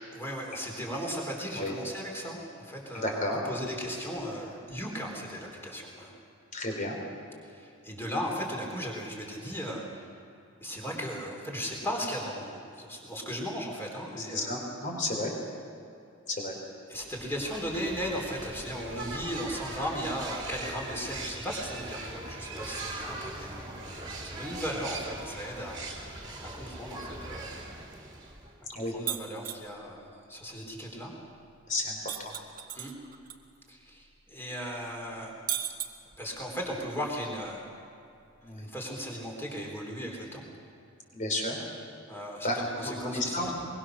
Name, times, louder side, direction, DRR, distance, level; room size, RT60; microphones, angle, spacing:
voice 1, 0.1-6.2 7.4-10.1 10.6-14.7 16.9-25.8 26.4-27.5 28.6-31.1 32.7-32.9 33.7-35.3 36.2-37.7 38.5-40.4 42.1-43.5, equal, 10° left, -1 dB, 3.7 m, -37 dB
voice 2, 2.9-3.4 6.5-7.0 14.2-15.3 16.3-16.5 28.7-28.9 31.7-32.3 38.4-38.7 41.1-41.6 42.4-43.5, left 1 dB, 35° left, 1 dB, 4.2 m, -32 dB
sound 1, 17.0-28.6, right 2 dB, 20° right, 2.6 m, -40 dB
sound 2, 29.1-29.6 32.1-33.3 33.7-33.8 35.5-36.4, right 11 dB, 40° right, 1.3 m, -34 dB
23.5 x 22.5 x 6.4 m, 2.6 s
head